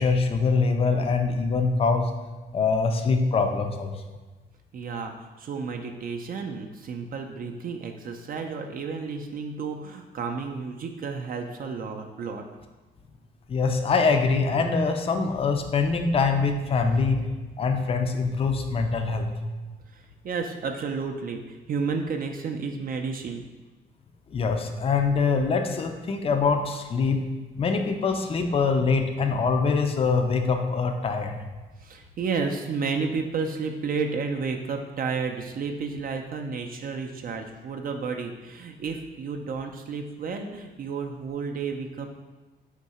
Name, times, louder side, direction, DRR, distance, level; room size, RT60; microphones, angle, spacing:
voice 1, 0.0-2.1 2.5-3.9 13.5-17.2 17.6-19.3 24.3-27.2 27.6-31.4, left 4 dB, 30° left, 5 dB, 0.4 m, -24 dB
voice 2, 4.7-12.4 19.9-23.4 31.8-42.1, right 5 dB, 45° right, 3 dB, 0.4 m, -32 dB
3.6 x 2.7 x 4.1 m, 1.2 s
cardioid pair, 90°, 20 cm